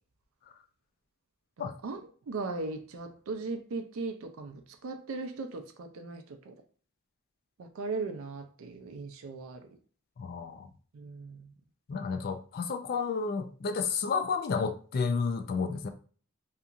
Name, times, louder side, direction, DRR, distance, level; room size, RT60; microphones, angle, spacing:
voice 1, 1.6-2.0 2.3-6.6 7.6-9.7 10.9-11.5, right 3 dB, 65° right, 0.4 m, -38 dB
voice 2, 10.2-10.7 11.9-15.9, left 5 dB, 45° left, 0.3 m, -31 dB
2.8 x 2.4 x 2.4 m
head